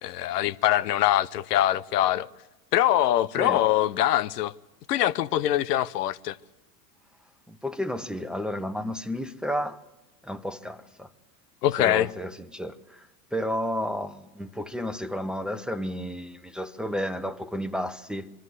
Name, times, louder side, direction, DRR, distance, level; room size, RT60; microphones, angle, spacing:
voice 1, 0.0-2.3 2.7-4.5 4.9-6.4 11.6-12.1, left 13 dB, 80° left, 0.8 m, -23 dB
voice 2, 7.5-9.8 10.2-11.1 11.8-18.3, equal, ahead, 0.9 m, -32 dB
23.5 x 13.0 x 9.6 m
hypercardioid pair, 95°, 47 cm